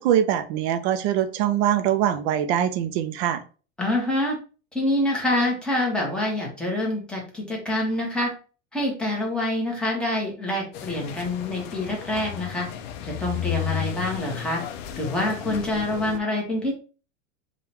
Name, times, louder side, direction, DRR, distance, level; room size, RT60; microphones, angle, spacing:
voice 1, 0.0-3.4, right 10 dB, 50° right, 10 dB, 0.6 m, -23 dB
voice 2, 3.8-4.4 4.7-8.3 8.7-12.7 13.0-14.6 15.0-16.7, left 1 dB, ahead, -2 dB, 1.0 m, -26 dB
sound 1, 10.7-16.2, left 11 dB, 50° left, 0.5 m, -33 dB
3.7 x 2.4 x 4.2 m, 0.36 s
supercardioid pair, 150°, 42 cm